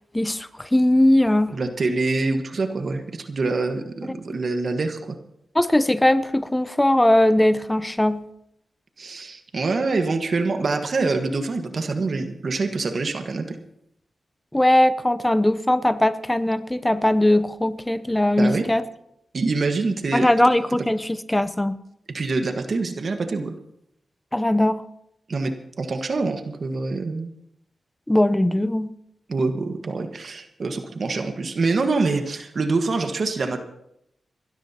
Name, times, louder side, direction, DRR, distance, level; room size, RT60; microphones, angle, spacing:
voice 1, 0.1-1.6 5.5-8.2 14.5-18.8 20.1-21.8 24.3-24.8 28.1-28.9, left 1 dB, 15° left, 14 dB, 0.7 m, -20 dB
voice 2, 1.5-5.2 9.0-13.5 18.4-18.7 19.3-20.3 22.1-23.6 25.3-27.3 29.3-33.6, right 3 dB, 60° right, 7 dB, 1.4 m, -25 dB
28.5 x 12.5 x 2.9 m, 0.78 s
cardioid pair, 50°, 0 cm